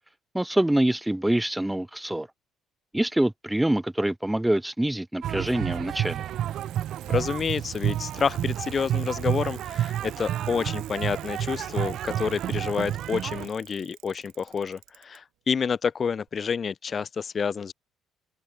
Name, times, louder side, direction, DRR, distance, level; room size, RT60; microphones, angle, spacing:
voice 1, 0.3-2.3 2.9-6.2, right 1 dB, 5° right, 0.3 m, -25 dB
sound 1, 5.2-13.5, right 11 dB, 60° right, 0.6 m, -30 dB
Bicycle, 5.6-15.2 16.3-16.4, right 18 dB, 85° right, 7.8 m, -50 dB
voice 2, 7.1-17.7, left 6 dB, 35° left, 1.7 m, -29 dB
open air
cardioid pair, 125°, 0 cm